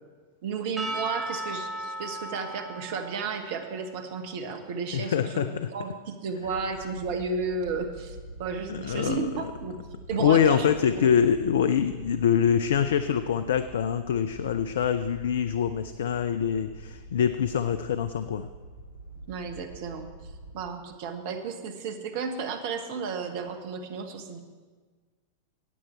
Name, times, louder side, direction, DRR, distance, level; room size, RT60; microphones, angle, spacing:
voice 1, 0.4-9.8 10.1-10.7 10.9-11.1 19.3-24.4, right 5 dB, 50° right, 6 dB, 1.2 m, -33 dB
Percussion / Church bell, 0.8-5.1, right 1 dB, 15° right, 2.0 m, -37 dB
voice 2, 4.9-5.7 8.7-9.3 10.2-18.5, left 8 dB, 60° left, 12 dB, 0.4 m, -25 dB
sound 1, 6.4-20.7, right 1 dB, 80° left, 1.4 m, -45 dB
15.5 x 9.0 x 4.4 m, 1.4 s
figure-of-eight pair, 90°, 0 cm